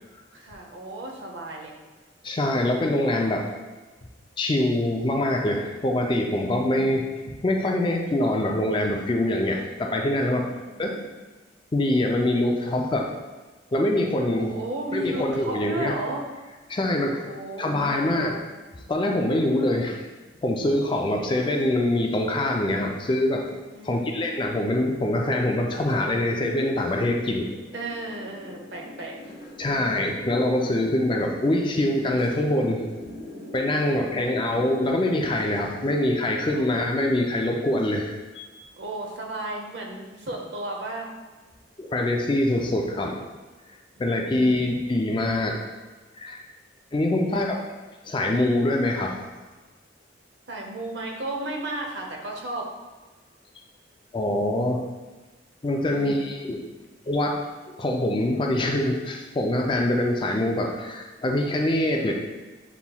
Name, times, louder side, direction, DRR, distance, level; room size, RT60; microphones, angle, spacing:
voice 1, 0.3-1.8 10.5-11.0 14.3-16.3 17.3-18.3 23.7-24.3 27.7-29.1 29.7-30.0 36.5-36.6 38.8-41.1 44.0-44.8 47.1-47.5 50.5-52.7 55.8-56.4, right 2 dB, 65° right, 0 dB, 0.7 m, -35 dB
voice 2, 2.2-3.5 4.4-10.5 10.8-11.1 11.7-13.1 13.7-14.5 14.9-15.9 16.7-17.3 17.6-18.4 18.9-20.0 20.4-23.5 23.8-27.5 29.6-32.8 33.5-38.2 41.8-43.2 44.0-45.6 46.2-46.4 46.9-47.5 48.0-49.2 54.1-54.8 55.6-56.6 57.1-57.4 57.7-62.1, left 1 dB, 25° left, 1 dB, 0.4 m, -24 dB
sound 1, 23.7-38.5, left 1 dB, 50° left, 1.0 m, -43 dB
6.9 x 3.0 x 2.3 m, 1.2 s
head